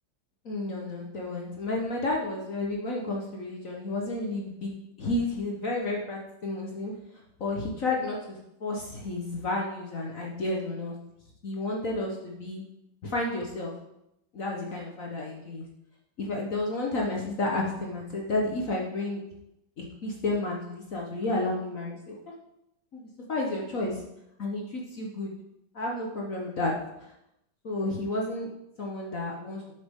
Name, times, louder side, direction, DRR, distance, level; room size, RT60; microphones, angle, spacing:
voice 1, 0.4-6.9 7.4-10.9 11.4-12.6 13.0-13.7 14.3-15.7 16.2-19.2 19.8-22.2 22.9-24.0 24.4-25.3 25.7-26.7 27.6-28.5 28.8-29.6, left 2 dB, 50° left, -2 dB, 1.4 m, -31 dB
8.9 x 7.2 x 3.7 m, 0.83 s
omnidirectional pair, 2.1 m